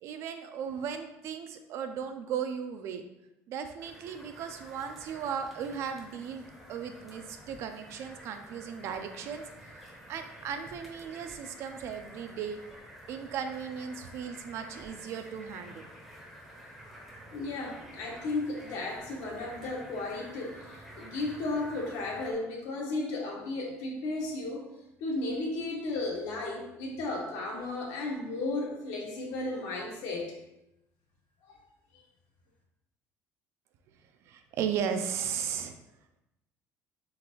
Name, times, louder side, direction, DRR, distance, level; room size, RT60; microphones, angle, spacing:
voice 1, 0.0-3.0 3.5-9.4 10.1-12.6 13.1-15.9 34.3-35.8, right 7 dB, 50° right, 8 dB, 0.4 m, -36 dB
sound 1, 3.8-22.3, equal, ahead, 0.6 m, -50 dB
voice 2, 17.3-24.7 25.0-30.3 31.5-31.6, left 2 dB, 70° left, -1 dB, 1.1 m, -34 dB
3.8 x 3.3 x 3.0 m, 0.88 s
cardioid pair, 170°, 6 cm